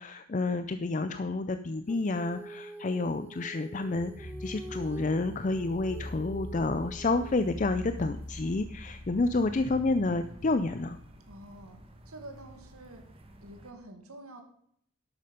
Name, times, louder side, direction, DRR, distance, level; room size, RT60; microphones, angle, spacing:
voice 1, 0.0-11.0, left 3 dB, 35° left, 11 dB, 0.4 m, -29 dB
Female singing, 1.9-7.6, right 1 dB, 10° right, 1.0 m, -46 dB
sound 1, 3.9-11.1, left 1 dB, 70° left, 3.1 m, -43 dB
sound 2, 6.5-13.7, right 1 dB, 25° right, 1.4 m, -51 dB
voice 2, 11.3-11.8 12.1-13.0 13.4-14.4, right 1 dB, 85° right, 5 dB, 2.1 m, -47 dB
12.0 x 8.5 x 5.2 m, 0.68 s
head